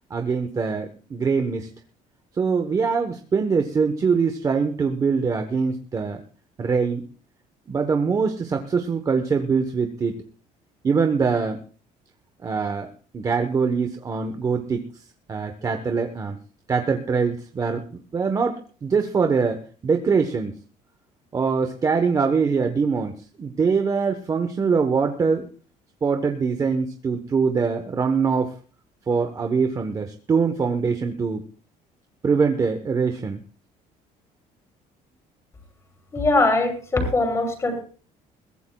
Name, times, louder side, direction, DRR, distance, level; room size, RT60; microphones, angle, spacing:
voice 1, 0.1-1.7 2.4-6.2 6.6-7.1 7.7-10.2 10.8-11.6 12.4-14.8 15.3-16.4 16.7-20.5 21.3-25.5 26.0-28.5 29.1-31.4 32.2-33.4, right 5 dB, 25° right, 5 dB, 1.0 m, -23 dB
voice 2, 36.1-37.8, left 2 dB, 20° left, 1 dB, 6.4 m, -21 dB
22.0 x 16.5 x 2.3 m, 0.39 s
cardioid pair, 165°, 15 cm